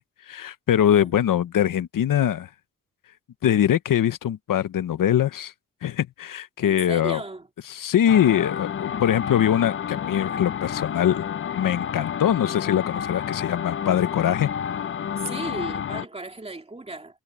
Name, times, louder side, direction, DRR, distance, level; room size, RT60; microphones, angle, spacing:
voice 1, 0.3-2.5 3.4-5.5 5.8-7.2 7.7-11.3 11.5-14.5, left 10 dB, 85° left, 0.8 m, -22 dB
voice 2, 6.6-7.5 15.2-17.2, right 2 dB, 20° right, 2.7 m, -36 dB
sound 1, 8.1-16.1, left 8 dB, 40° left, 0.4 m, -30 dB
wide cardioid pair, 170°, 32 cm